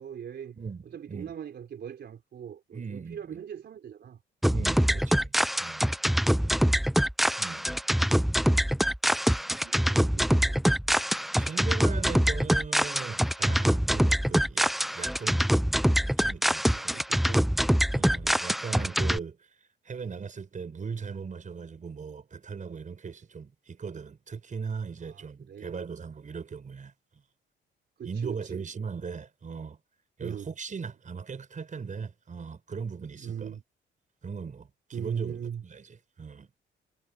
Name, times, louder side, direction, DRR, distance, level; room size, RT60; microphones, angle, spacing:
voice 1, 0.0-0.6 0.8-4.2 6.3-6.9 9.5-10.6 16.7-17.4 18.2-18.4 25.0-25.8 28.0-28.7 30.2-30.5 33.2-33.6 34.9-35.6, right 8 dB, 60° right, 3.8 m, -41 dB
voice 2, 0.6-1.3 2.7-3.4 4.5-5.3 5.6-5.9 7.4-7.8 11.4-15.5 16.0-17.0 17.9-19.5 19.8-27.2 28.0-29.8 30.2-33.6 34.2-36.5, right 5 dB, 40° right, 5.7 m, -39 dB
sound 1, 4.4-19.2, equal, ahead, 0.3 m, -24 dB
cardioid pair, 90°, 20 cm